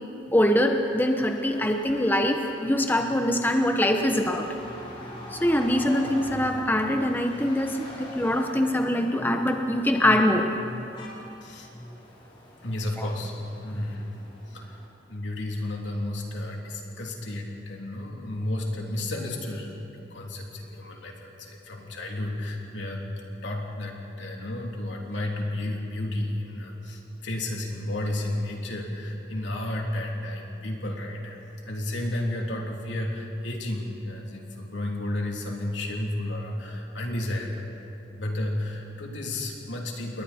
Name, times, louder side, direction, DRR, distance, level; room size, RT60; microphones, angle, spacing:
voice 1, 0.3-4.5 5.3-10.9 13.0-13.1, left 1 dB, 10° left, 4 dB, 0.9 m, -23 dB
sound 1, 0.8-14.8, left 1 dB, 30° left, 3.9 m, -44 dB
voice 2, 12.6-14.1 14.5-14.7 15.1-19.7 20.1-23.0 23.4-31.4 31.7-37.5 38.2-40.2, left 1 dB, 80° left, -1 dB, 3.2 m, -32 dB
28.5 x 21.0 x 4.4 m, 2.9 s
head